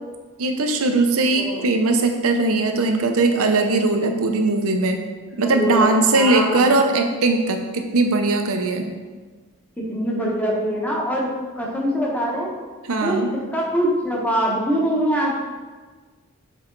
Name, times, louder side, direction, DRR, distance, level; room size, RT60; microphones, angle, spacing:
voice 1, 0.4-5.0 5.4-8.9 12.9-13.3, right 3 dB, 70° right, 5 dB, 0.7 m, -19 dB
voice 2, 1.3-1.7 5.4-6.7 9.8-12.5 13.0-13.2 13.5-15.4, equal, 5° left, -3 dB, 1.1 m, -23 dB
6.3 x 4.1 x 3.9 m, 1.4 s
head